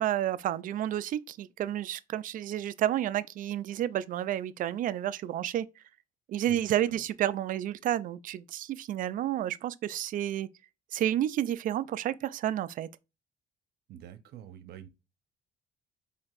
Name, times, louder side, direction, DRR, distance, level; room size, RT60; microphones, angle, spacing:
voice 1, 0.0-5.7 6.3-10.5 10.9-12.9, right 12 dB, 55° right, 0.4 m, -30 dB
voice 2, 6.4-7.0 13.9-14.9, right 10 dB, 70° right, 0.8 m, -47 dB
4.5 x 3.4 x 2.5 m
cardioid pair, 110°, 17 cm